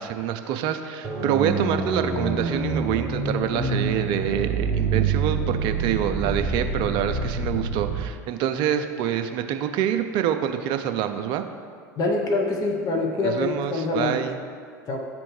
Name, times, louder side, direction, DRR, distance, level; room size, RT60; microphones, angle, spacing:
voice 1, 0.0-11.4 13.2-14.4, right 10 dB, 55° right, 7 dB, 0.5 m, -26 dB
sound 1, 1.0-8.1, right 4 dB, 30° right, 1.0 m, -26 dB
voice 2, 12.0-14.2 14.9-15.0, left 3 dB, 40° left, 1 dB, 0.9 m, -25 dB
10.0 x 3.4 x 3.2 m, 2.1 s
hypercardioid pair, 80°, 10 cm